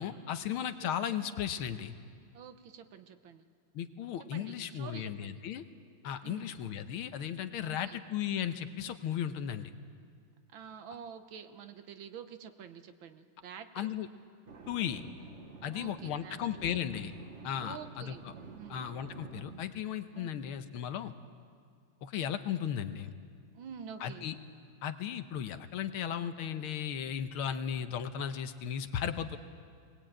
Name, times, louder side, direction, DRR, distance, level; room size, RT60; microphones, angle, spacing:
voice 1, 0.0-1.9 3.7-5.6 6.0-9.7 13.8-14.1 14.7-15.0 15.6-17.1 17.4-18.3 18.7-21.1 22.0-23.1 24.0-24.4 24.8-29.4, left 9 dB, 85° left, 9 dB, 1.8 m, -36 dB
voice 2, 0.6-0.9 2.3-3.4 4.2-5.4 6.2-6.5 7.6-8.0 10.5-13.9 15.7-16.8 17.6-18.2 18.5-18.8 20.1-20.3 23.5-24.3, right 7 dB, 70° right, 9 dB, 1.7 m, -48 dB
sound 1, 14.5-19.6, right 5 dB, 40° right, 1.2 m, -50 dB
21.0 x 19.0 x 8.9 m, 2.2 s
omnidirectional pair, 2.3 m